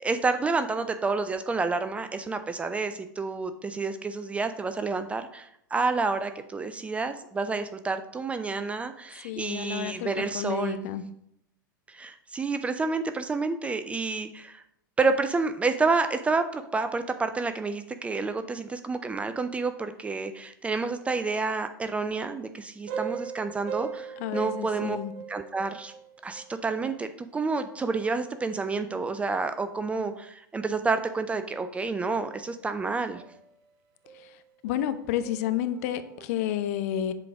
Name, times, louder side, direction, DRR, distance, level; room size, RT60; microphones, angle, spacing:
voice 1, 0.0-10.8 11.9-14.6 15.0-25.0 25.3-25.9 26.2-33.2, right 4 dB, 10° right, 9 dB, 0.4 m, -29 dB
voice 2, 9.2-11.0 24.2-25.1 34.6-37.1, left 11 dB, 45° left, 11 dB, 0.6 m, -30 dB
sound 1, 22.9-26.7 28.2-28.4 30.8-30.9 31.6-31.7 32.2-32.8 33.1-33.5 34.0-34.4 34.7-36.2, right 8 dB, 45° right, 0.8 m, -39 dB
7.5 x 3.8 x 4.7 m, 0.76 s
figure-of-eight pair, 90°, 11 cm